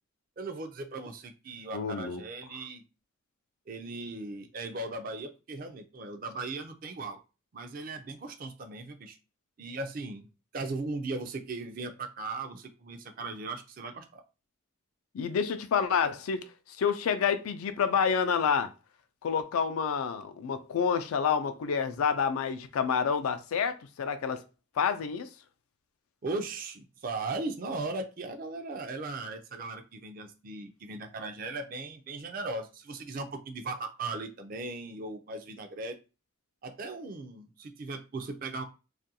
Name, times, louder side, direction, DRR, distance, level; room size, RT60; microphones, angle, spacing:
voice 1, 0.4-2.8 3.7-7.2 7.5-9.2 9.6-10.3 10.5-14.2 26.2-36.0 36.6-38.6, right 3 dB, 40° right, 0.4 m, -38 dB
voice 2, 1.7-2.2 15.1-16.5 16.8-18.7 19.2-24.4 24.8-25.3, left 6 dB, 85° left, 0.4 m, -28 dB
2.4 x 2.2 x 2.7 m
head